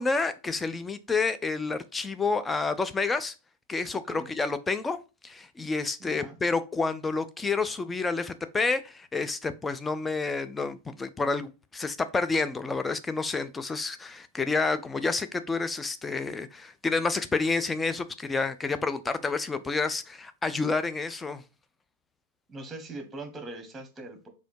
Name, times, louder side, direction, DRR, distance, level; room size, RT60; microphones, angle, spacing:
voice 1, 0.0-3.3 3.7-5.0 5.2-21.4, left 4 dB, 15° left, 0.4 m, -29 dB
voice 2, 6.0-6.4 22.5-24.3, right 2 dB, 15° right, 1.2 m, -41 dB
4.1 x 2.7 x 4.5 m
figure-of-eight pair, 90°, 0 cm